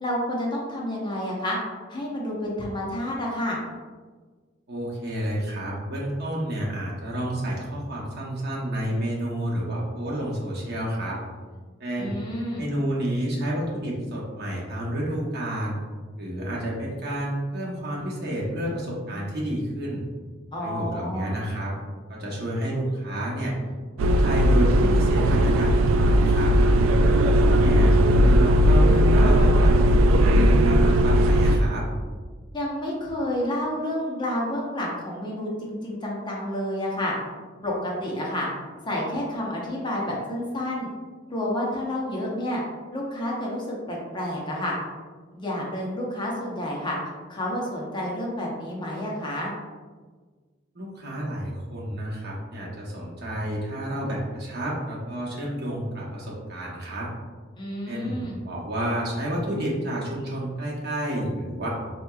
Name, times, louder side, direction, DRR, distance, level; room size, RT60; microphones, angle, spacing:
voice 1, 0.0-1.6 1.9-3.6 12.0-12.7 20.5-21.4 32.5-37.1 37.6-38.5 38.9-40.9 41.3-42.6 42.9-44.8 45.3-47.0 47.3-49.5 57.6-58.4, left 1 dB, 25° left, -3 dB, 0.7 m, -29 dB
voice 2, 4.7-11.2 11.8-12.2 12.6-15.8 16.2-20.0 20.6-21.7 22.1-23.5 24.0-26.5 27.2-31.8 50.7-57.1 57.9-61.7, right 1 dB, 55° right, -4 dB, 1.0 m, -30 dB
sound 1, 24.0-31.6, equal, 85° right, 0.3 m, -18 dB
4.3 x 2.9 x 2.3 m, 1.4 s
head